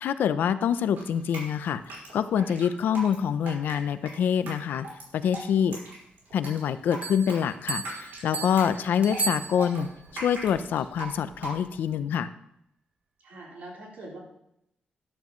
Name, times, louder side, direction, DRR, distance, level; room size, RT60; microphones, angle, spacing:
voice 1, 0.0-4.9 5.1-5.8 6.3-12.3, left 8 dB, 75° left, 12 dB, 0.6 m, -26 dB
Drip, 1.0-11.9, right 2 dB, 85° right, 5.0 m, -40 dB
sound 1, 7.0-10.0, right 5 dB, 45° right, 0.8 m, -35 dB
voice 2, 13.2-14.2, right 2 dB, 65° right, -3 dB, 4.0 m, -43 dB
12.5 x 11.5 x 3.1 m, 0.79 s
wide cardioid pair, 175°, 3 cm